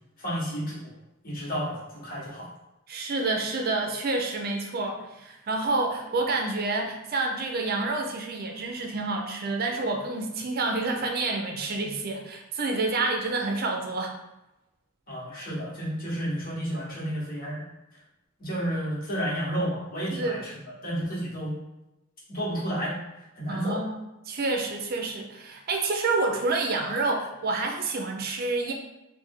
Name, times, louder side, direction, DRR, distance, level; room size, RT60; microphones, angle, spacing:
voice 1, 0.2-0.9 1.2-2.5 15.1-17.6 18.4-20.5 20.8-21.6 22.3-23.0 23.3-23.8, equal, 45° left, -7 dB, 1.5 m, -31 dB
voice 2, 2.9-14.2 20.1-20.5 23.5-28.7, right 3 dB, 50° right, 2 dB, 0.5 m, -28 dB
3.2 x 2.6 x 3.6 m, 0.95 s
head